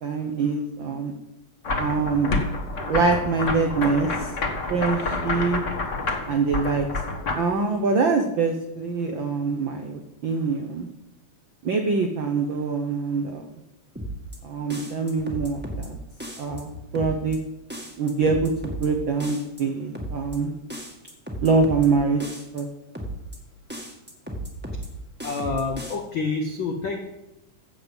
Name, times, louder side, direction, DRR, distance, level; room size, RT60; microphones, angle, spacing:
voice 1, 0.0-1.1 1.8-2.3 2.8-4.3 4.7-5.6 6.3-6.9 7.3-10.9 11.6-13.4 14.4-16.0 16.4-17.4 18.0-20.5 21.4-22.7, right 4 dB, 80° right, 4 dB, 1.0 m, -24 dB
sound 1, 1.6-7.3, left 3 dB, 50° left, 0.8 m, -28 dB
sound 2, 13.9-14.4 14.7-15.9 16.2-16.6 16.9-17.4 17.7-18.9 19.2-19.6 19.9-20.4 20.7-21.9 22.2-22.6 22.9-23.4 23.7-24.9 25.2-25.9, right 1 dB, 5° right, 1.0 m, -34 dB
voice 2, 25.2-27.0, left 4 dB, 75° left, 4 dB, 1.1 m, -28 dB
14.5 x 7.7 x 5.3 m, 0.96 s
omnidirectional pair, 3.6 m